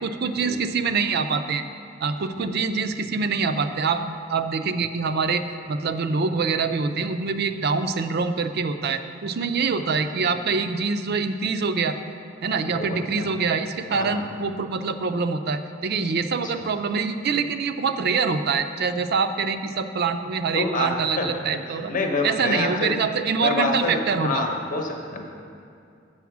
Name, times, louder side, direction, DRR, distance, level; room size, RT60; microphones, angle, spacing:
voice 1, 0.0-1.6 2.0-12.0 12.4-21.9 22.2-24.4, right 5 dB, 55° right, 9 dB, 0.4 m, -25 dB
voice 2, 12.7-13.3 13.9-14.2 16.4-16.5 20.5-21.3 21.9-23.0 23.4-25.2, left 2 dB, 40° left, 2 dB, 0.9 m, -27 dB
7.8 x 7.1 x 6.0 m, 2.4 s
head